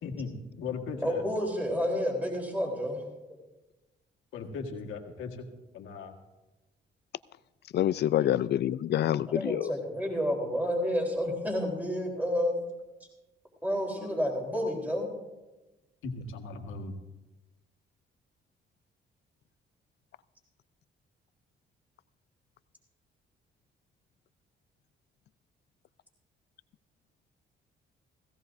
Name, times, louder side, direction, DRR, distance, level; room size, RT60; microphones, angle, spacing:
voice 1, 0.0-1.2 4.3-5.5 5.7-6.2 14.0-14.1 16.0-16.9, left 4 dB, 80° left, 1.8 m, -38 dB
voice 2, 1.0-3.0 8.2-8.4 9.3-12.6 13.6-15.1, equal, 10° right, 3.7 m, -30 dB
voice 3, 7.7-9.7, left 12 dB, 60° left, 0.4 m, -27 dB
17.0 x 16.0 x 2.6 m
cardioid pair, 90°, 20 cm